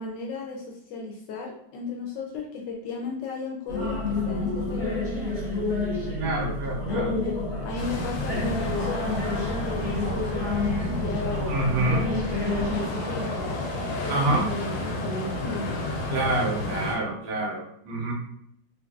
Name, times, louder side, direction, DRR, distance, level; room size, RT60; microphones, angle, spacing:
voice 1, 0.0-5.6 6.9-7.3 7.6-15.7, left 3 dB, 75° left, -1 dB, 1.1 m, -34 dB
sound 1, 3.7-12.8, left 2 dB, 15° left, 0.9 m, -29 dB
voice 2, 6.2-7.1 11.5-12.1 14.1-14.5 16.1-18.1, right 2 dB, 70° right, -1 dB, 1.4 m, -26 dB
sound 2, 7.8-17.0, left 1 dB, 90° left, 1.5 m, -32 dB
sound 3, 8.7-14.4, equal, 15° right, 0.4 m, -42 dB
3.8 x 2.5 x 2.3 m, 0.70 s
omnidirectional pair, 2.2 m